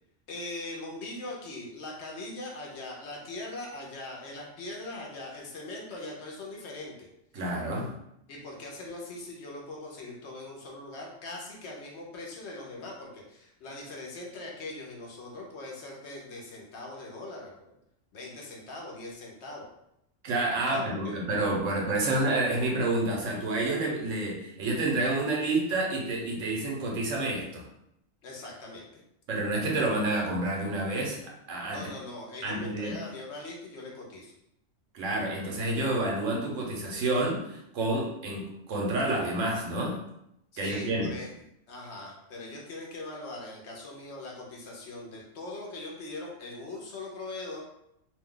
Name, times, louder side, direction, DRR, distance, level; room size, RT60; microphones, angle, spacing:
voice 1, 0.3-7.1 8.3-17.8 18.1-19.7 20.7-21.1 28.2-29.0 31.7-34.3 40.5-41.3 41.7-47.6, left 2 dB, 65° left, -2 dB, 0.9 m, -41 dB
voice 2, 7.3-7.9 20.2-27.7 29.3-31.2 31.5-31.8 32.4-33.0 34.9-40.0 40.6-41.1, right 2 dB, 80° right, -2 dB, 1.1 m, -29 dB
2.7 x 2.2 x 3.6 m, 0.80 s
omnidirectional pair, 1.3 m